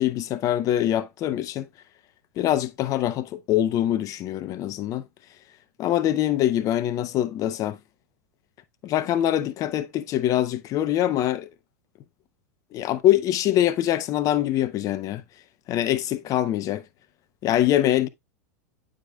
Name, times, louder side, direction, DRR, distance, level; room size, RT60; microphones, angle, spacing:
voice 1, 0.0-1.7 2.4-5.0 5.8-7.8 8.8-11.5 12.7-15.2 15.7-16.8 17.4-18.1, left 12 dB, 40° left, 0.8 m, -24 dB
8.7 x 5.1 x 2.3 m
hypercardioid pair, 95°, 9 cm